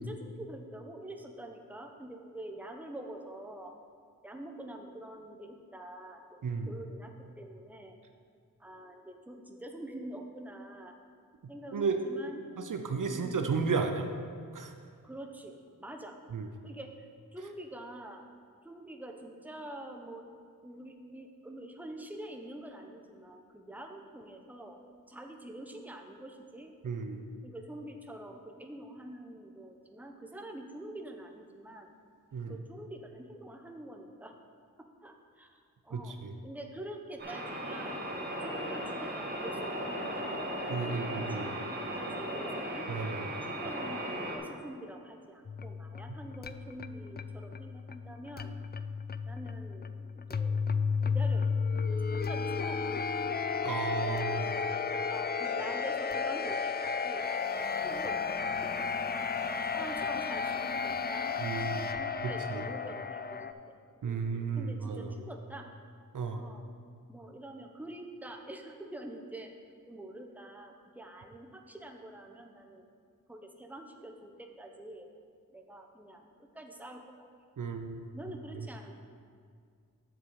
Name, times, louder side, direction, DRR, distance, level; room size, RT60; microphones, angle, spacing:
voice 1, 0.0-3.8 4.2-8.0 8.6-11.0 11.5-12.6 13.1-13.5 15.0-16.2 16.6-18.2 18.6-20.3 20.6-24.8 25.1-26.7 27.4-31.9 32.5-34.3 35.0-36.2 36.4-38.0 38.4-42.9 43.4-48.6 49.2-50.6 51.0-51.5 51.9-53.1 54.0-54.6 55.1-57.3 57.6-58.2 58.8-61.4 61.9-63.5 64.0-65.7 66.3-66.7 67.1-69.5 69.9-72.9 73.3-75.1 75.5-77.3 78.1-78.9, right 1 dB, 5° right, 3 dB, 0.9 m, -46 dB
voice 2, 12.6-14.1 14.5-14.7 16.3-16.5 26.8-27.2 32.3-32.6 35.9-36.3 40.7-41.5 42.9-43.3 53.6-54.5 61.4-61.8 62.2-62.6 64.0-65.1 66.1-66.4 77.6-78.1, right 5 dB, 60° right, 5 dB, 0.7 m, -33 dB
sound 1, 37.2-44.4, equal, 30° right, 1.9 m, -37 dB
sound 2, 45.4-63.5, left 5 dB, 30° left, 0.4 m, -33 dB
7.6 x 7.0 x 4.8 m, 2.2 s
cardioid pair, 45°, 36 cm